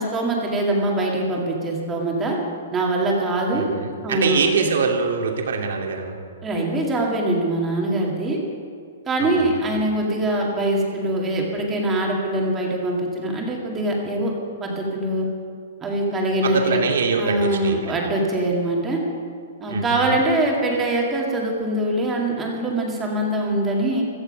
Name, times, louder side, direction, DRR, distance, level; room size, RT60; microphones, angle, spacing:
voice 1, 0.0-2.4 2.7-3.7 4.0-4.4 6.4-8.4 9.1-14.3 14.6-15.3 15.8-16.8 17.1-19.0 19.6-24.0, right 1 dB, 10° right, -1 dB, 2.2 m, -23 dB
voice 2, 3.5-6.2 9.2-9.6 16.4-17.7 19.7-20.2, right 5 dB, 70° right, 2 dB, 2.6 m, -24 dB
17.0 x 14.0 x 5.5 m, 2.3 s
hypercardioid pair, 175°, 0 cm